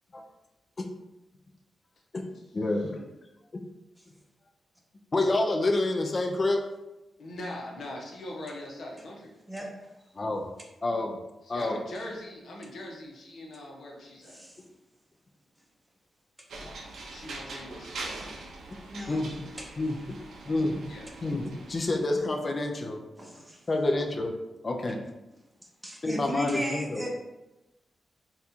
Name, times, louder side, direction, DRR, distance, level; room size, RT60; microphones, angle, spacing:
voice 1, 2.5-3.1 5.1-6.7 10.2-10.5 10.8-11.2 11.5-11.8 16.6-16.7 19.1-19.3 19.8-20.2 20.5-20.8 21.2-23.0 23.7-24.3 24.6-25.0 26.0-27.0, left 2 dB, 35° left, 3 dB, 0.4 m, -28 dB
voice 2, 7.2-9.3 11.4-14.4 17.0-18.2 20.9-21.1, left 1 dB, 70° left, -1 dB, 0.8 m, -41 dB
sound 1, 16.5-22.1, right 2 dB, 75° right, 0.5 m, -43 dB
voice 3, 18.9-19.3 19.6-19.7 23.2-23.6 25.8-27.1, right 1 dB, 10° right, 0 dB, 0.6 m, -36 dB
4.1 x 2.3 x 2.7 m, 0.99 s
wide cardioid pair, 115°, 0 cm